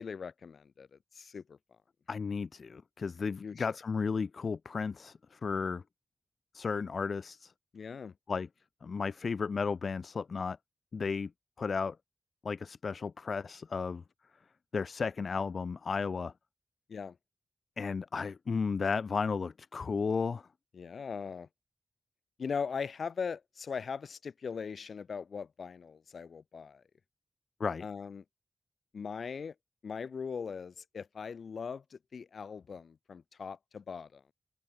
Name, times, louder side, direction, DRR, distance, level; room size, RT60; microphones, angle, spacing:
voice 1, 0.0-1.6 3.4-3.7 7.7-8.1 16.9-17.2 20.7-21.5 22.4-26.8 27.8-28.2 28.9-29.5 29.8-34.3, left 6 dB, 90° left, 6.8 m, -40 dB
voice 2, 2.1-5.8 6.5-7.5 8.3-8.5 8.8-10.6 10.9-11.3 11.6-12.0 12.4-14.0 14.7-16.3 17.8-20.4 27.6-27.8, left 5 dB, 70° left, 0.5 m, -34 dB
wide cardioid pair, 110°, 0 cm